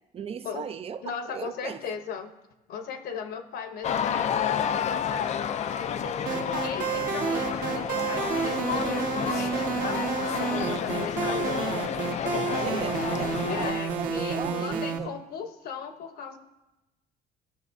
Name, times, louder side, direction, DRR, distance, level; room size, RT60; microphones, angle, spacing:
voice 1, 0.1-1.8 12.6-15.2, right 7 dB, 35° right, 12 dB, 0.5 m, -37 dB
voice 2, 1.0-2.3 2.7-11.9 13.5-16.4, left 6 dB, 65° left, 7 dB, 1.0 m, -38 dB
sound 1, 3.8-13.7, left 8 dB, 45° left, 0.4 m, -30 dB
sound 2, 6.3-15.0, right 6 dB, 55° right, 1.4 m, -30 dB
15.0 x 6.3 x 2.6 m, 1.0 s
cardioid pair, 110°, 17 cm